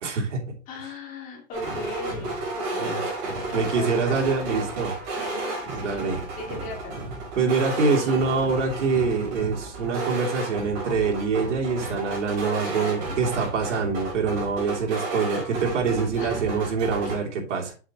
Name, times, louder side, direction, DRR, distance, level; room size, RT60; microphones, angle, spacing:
voice 1, 0.0-0.5 2.8-3.0 3.5-4.9 5.7-6.2 7.4-17.2 17.5-17.7, right 4 dB, 70° right, -1 dB, 3.1 m, -25 dB
voice 2, 0.7-4.2 5.1-7.0 12.6-13.2 16.2-16.7 17.1-17.2, left 3 dB, 20° left, 0 dB, 2.1 m, -38 dB
sound 1, 1.5-17.2, right 2 dB, 35° right, 4.3 m, -32 dB
7.9 x 7.4 x 3.0 m, 0.36 s
hypercardioid pair, 170°, 37 cm